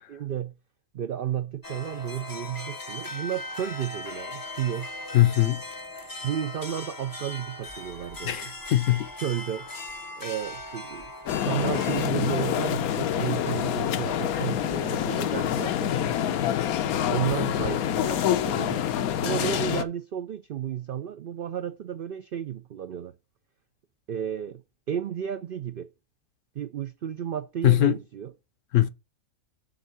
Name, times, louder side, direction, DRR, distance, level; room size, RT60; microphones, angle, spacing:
voice 1, 0.1-0.6 0.9-4.9 6.2-8.5 9.2-9.7 10.2-11.1 11.4-16.5 17.1-18.9 19.2-23.1 24.1-25.9 26.6-28.3, right 9 dB, 70° right, 0.5 m, -32 dB
sound 1, 1.6-12.1, left 2 dB, 20° left, 0.5 m, -39 dB
voice 2, 5.1-5.6 8.2-9.1 27.6-28.0 28.7-28.9, left 14 dB, 65° left, 0.9 m, -21 dB
sound 2, 11.3-19.8, left 10 dB, 85° left, 1.2 m, -26 dB
7.6 x 3.7 x 6.6 m
omnidirectional pair, 1.5 m